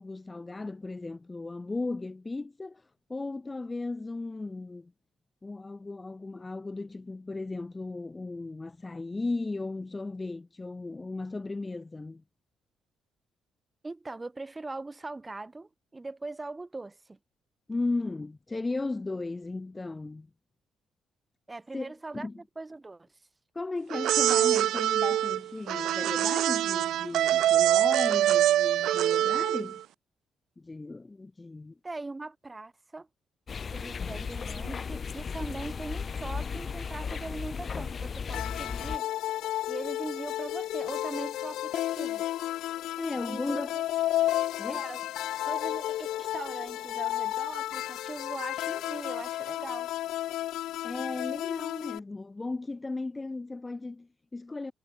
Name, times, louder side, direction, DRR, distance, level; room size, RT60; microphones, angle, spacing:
voice 1, 0.0-4.9 5.4-12.2 17.7-20.3 21.7-22.3 23.5-29.8 30.6-31.7 43.0-43.7 44.6-44.9 50.8-54.7, left 3 dB, 15° left, 1.1 m, -36 dB
voice 2, 13.8-17.2 21.5-23.1 31.8-33.1 33.7-39.1 39.7-42.3 43.3-43.8 44.7-45.0 45.5-49.9, right 2 dB, 15° right, 6.5 m, -40 dB
sound 1, 23.9-29.8, right 12 dB, 70° right, 0.9 m, -24 dB
sound 2, 33.5-39.0, left 6 dB, 30° left, 0.3 m, -35 dB
sound 3, 38.3-52.0, left 14 dB, 90° left, 0.9 m, -32 dB
cardioid pair, 170°, 0 cm